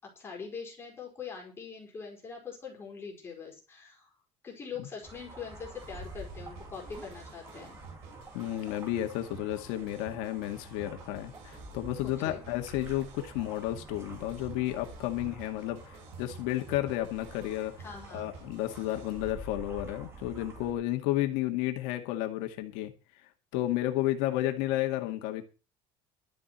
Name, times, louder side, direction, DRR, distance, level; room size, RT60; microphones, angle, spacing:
voice 1, 0.1-4.1 4.4-7.8 12.2-12.4 17.8-18.2, left 6 dB, 20° left, 4.7 m, -43 dB
sound 1, 5.0-20.7, right 2 dB, 20° right, 3.0 m, -48 dB
sound 2, 5.8-19.3, right 6 dB, 80° right, 4.8 m, -51 dB
voice 2, 8.3-17.7 18.1-25.4, left 14 dB, 85° left, 2.0 m, -32 dB
12.5 x 7.5 x 7.5 m
cardioid pair, 175°, 13 cm